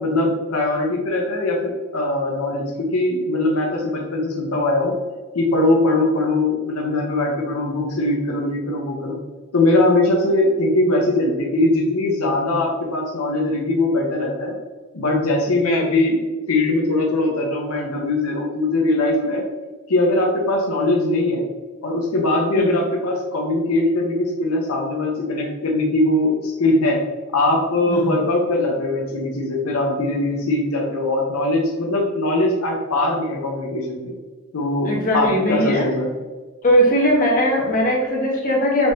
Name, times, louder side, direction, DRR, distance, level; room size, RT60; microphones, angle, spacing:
voice 1, 0.0-4.9 5.3-9.2 9.5-14.5 14.9-16.2 16.5-19.4 19.9-21.4 21.8-27.0 27.3-34.1 34.5-36.1, left 2 dB, 90° left, 0 dB, 0.8 m, -21 dB
voice 2, 34.8-35.8 36.6-38.9, equal, 40° left, -3 dB, 1.4 m, -19 dB
6.1 x 3.2 x 2.7 m, 1.4 s
head